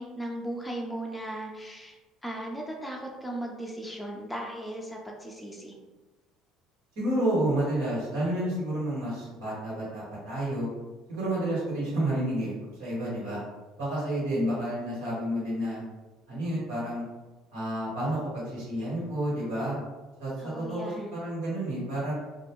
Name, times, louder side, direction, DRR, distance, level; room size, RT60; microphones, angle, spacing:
voice 1, 0.0-2.0 2.2-5.7 20.4-21.2, right 1 dB, 5° left, -1 dB, 0.5 m, -37 dB
voice 2, 6.9-10.7 11.1-12.5 12.8-13.4 13.8-15.8 16.3-17.0 17.5-19.8 20.2-22.1, right 1 dB, 85° right, -8 dB, 1.4 m, -30 dB
2.4 x 2.1 x 3.0 m, 1.2 s
supercardioid pair, 95°, 0 cm